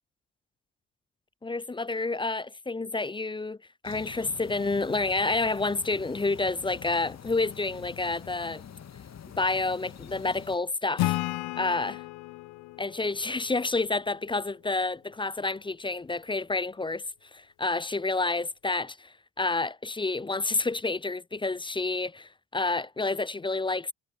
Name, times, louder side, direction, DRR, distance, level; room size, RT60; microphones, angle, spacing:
voice 1, 1.4-3.6 3.8-8.6 9.4-11.2 11.6-11.9 12.8-17.0 17.3-23.9, left 3 dB, 15° left, 0.5 m, -29 dB
sound 1, 3.8-10.6, left 8 dB, 40° left, 2.1 m, -46 dB
Acoustic guitar / Strum, 11.0-14.4, left 18 dB, 70° left, 1.7 m, -33 dB
hypercardioid pair, 50°, 39 cm